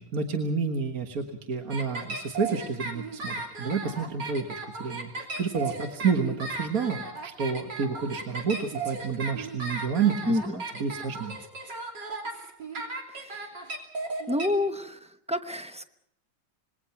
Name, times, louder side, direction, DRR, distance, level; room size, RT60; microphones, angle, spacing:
voice 1, 0.0-11.4, right 5 dB, 50° right, 4 dB, 1.9 m, -30 dB
sound 1, 1.7-14.5, right 3 dB, 70° right, 3.8 m, -35 dB
voice 2, 10.3-10.6 13.1-13.5 14.3-15.9, left 1 dB, 5° right, 7 dB, 0.5 m, -29 dB
26.5 x 21.5 x 5.9 m, 0.74 s
omnidirectional pair, 2.0 m